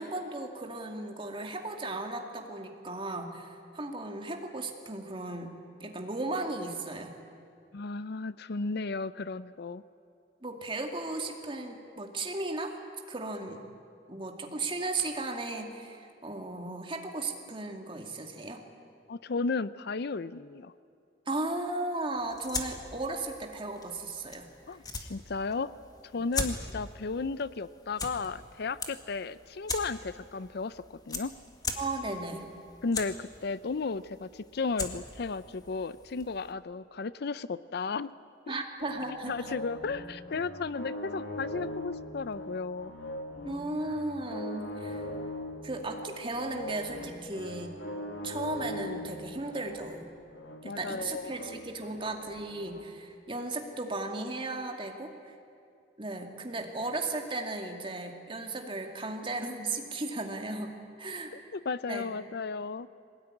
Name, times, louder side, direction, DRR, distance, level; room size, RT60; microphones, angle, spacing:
voice 1, 0.0-5.5 5.8-7.1 10.4-12.8 13.1-13.6 14.1-18.6 21.3-24.5 31.8-32.4 38.5-39.6 43.4-45.1 45.6-47.7 48.2-50.1 50.6-55.3 56.0-61.3 61.9-62.2, right 2 dB, 30° right, 3 dB, 2.4 m, -36 dB
voice 2, 7.7-9.8 19.1-20.7 24.7-25.7 26.1-31.3 32.8-38.1 38.5-38.6 39.3-42.9 50.6-51.3 61.5-62.9, left 4 dB, 60° left, 16 dB, 0.5 m, -34 dB
sound 1, 22.2-36.5, left 3 dB, 20° left, 2.0 m, -41 dB
sound 2, 38.8-52.8, left 1 dB, 80° left, 2.1 m, -41 dB
22.5 x 19.0 x 9.8 m, 2.5 s
head